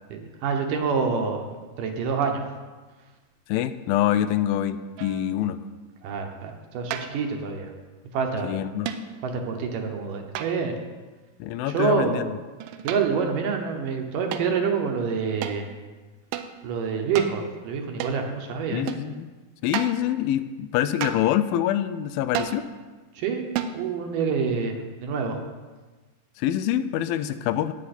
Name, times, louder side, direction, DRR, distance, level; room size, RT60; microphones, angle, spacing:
voice 1, 0.1-1.5 1.8-2.4 6.0-7.7 8.1-8.5 9.2-10.7 11.7-12.2 12.8-15.7 16.6-18.9 23.2-23.4 23.7-25.4, right 5 dB, 70° right, 3 dB, 2.5 m, -27 dB
voice 2, 3.5-5.6 8.4-8.9 11.4-12.4 18.7-19.3 19.6-22.7 26.4-27.7, left 11 dB, 85° left, 12 dB, 2.3 m, -25 dB
sound 1, 5.0-5.4 6.9-7.3 8.9-9.2 10.4-10.9 12.6-13.3 14.3-14.5 15.4-15.6 16.3-16.5 17.2-17.4 18.0-18.3 18.9-19.1 19.7-20.1 21.0-21.4 22.3-22.7 23.6-23.8, right 9 dB, 90° right, 2.5 m, -33 dB
18.0 x 7.4 x 4.2 m, 1.3 s
omnidirectional pair, 4.2 m